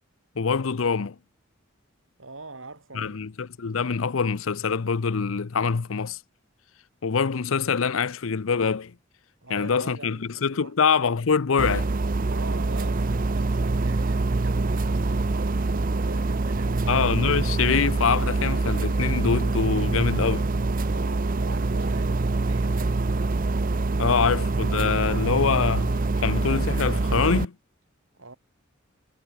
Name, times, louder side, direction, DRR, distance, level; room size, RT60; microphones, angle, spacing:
voice 1, 0.4-1.2 2.9-6.2 7.0-8.9 9.5-11.9 16.9-20.5 24.0-25.9 26.2-27.5, left 5 dB, 80° left, 0.6 m, -24 dB
voice 2, 2.2-3.2 9.4-10.7 12.3-16.9 20.8-22.8 28.1-28.4, right 3 dB, 75° right, 5.6 m, -43 dB
sound 1, 11.6-27.5, right 3 dB, 45° right, 0.7 m, -25 dB
head